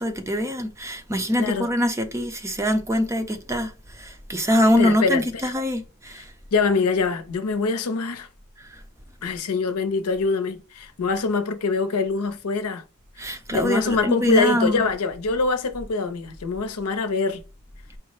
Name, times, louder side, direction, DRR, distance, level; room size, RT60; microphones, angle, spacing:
voice 1, 0.0-6.3 8.7-8.8 13.2-14.9, left 1 dB, 15° right, 0.5 m, -24 dB
voice 2, 1.4-1.7 4.8-5.5 6.5-8.3 9.2-12.8 13.2-17.4, left 4 dB, 85° left, 0.7 m, -24 dB
4.6 x 2.1 x 4.6 m
head